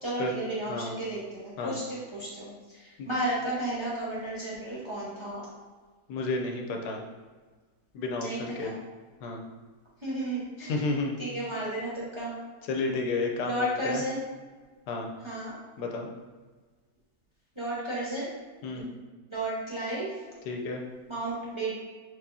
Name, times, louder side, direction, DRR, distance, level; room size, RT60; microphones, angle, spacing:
voice 1, 0.0-5.5 8.2-8.7 10.0-10.8 11.2-12.3 13.4-14.2 15.2-15.5 17.6-18.3 19.3-20.2 21.1-21.7, right 1 dB, 20° right, -8 dB, 0.9 m, -33 dB
voice 2, 6.1-7.0 7.9-8.7 9.2-9.4 10.6-11.2 12.7-14.0 14.9-15.1 15.8-16.1 18.6-18.9 20.5-20.8, left 3 dB, 85° left, 2 dB, 1.2 m, -31 dB
4.7 x 3.9 x 2.7 m, 1.4 s
omnidirectional pair, 1.7 m